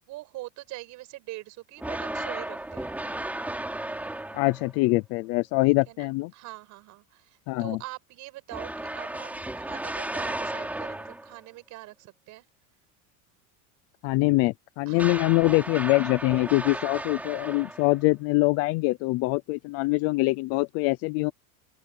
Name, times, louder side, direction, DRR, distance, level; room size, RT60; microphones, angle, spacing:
voice 1, 0.1-2.9 5.7-12.5 14.9-15.2, right 18 dB, 40° right, 5.6 m, -43 dB
sound 1, 1.8-4.8 8.5-11.4 15.0-18.1, right 1 dB, 5° right, 3.0 m, -34 dB
voice 2, 4.3-6.3 7.5-7.8 14.0-21.3, left 23 dB, 35° left, 0.4 m, -24 dB
open air
cardioid pair, 170°, 43 cm